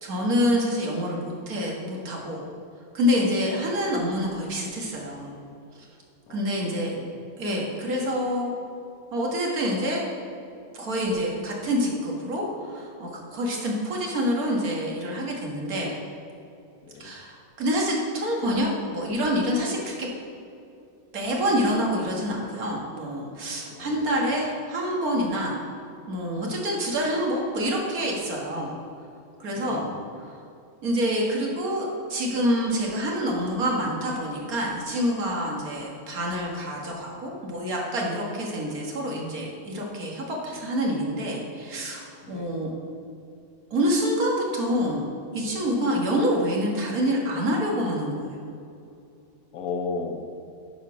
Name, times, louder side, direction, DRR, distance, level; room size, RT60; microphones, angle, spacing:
voice 1, 0.0-2.4 2.9-5.4 6.3-6.9 7.4-8.5 9.1-10.0 10.7-15.9 17.0-20.1 21.1-25.6 26.1-28.8 29.4-29.8 30.8-42.7 43.7-45.0 45.3-48.3, equal, 85° right, -2 dB, 1.9 m, -27 dB
voice 2, 6.3-7.1 16.8-17.1 23.7-24.0 29.5-29.9 42.2-42.7 49.5-50.2, left 4 dB, 80° left, 6 dB, 1.2 m, -36 dB
10.0 x 4.3 x 6.0 m, 2.6 s
omnidirectional pair, 1.5 m